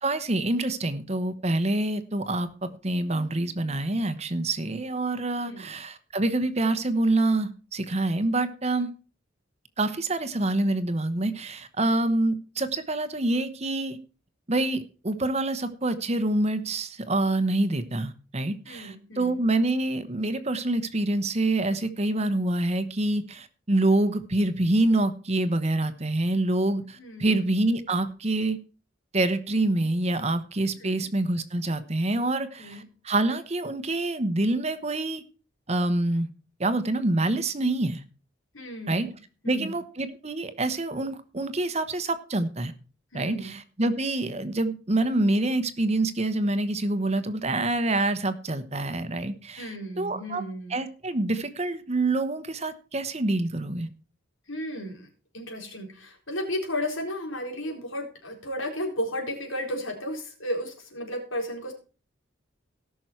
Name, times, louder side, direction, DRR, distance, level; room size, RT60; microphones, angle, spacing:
voice 1, 0.0-2.5 2.8-8.9 9.8-14.0 14.5-28.6 29.1-35.2 35.7-36.3 36.6-38.0 38.9-39.1 39.4-42.7 43.1-50.4 50.7-53.9, right 2 dB, 35° right, 11 dB, 1.0 m, -26 dB
voice 2, 5.4-5.8 18.7-19.4 27.0-27.4 30.8-31.1 32.6-32.9 38.5-39.2 39.4-39.8 43.1-43.5 49.6-50.8 54.5-55.1 55.3-61.7, equal, 85° left, 2 dB, 4.0 m, -34 dB
18.0 x 6.3 x 4.5 m, 0.37 s
head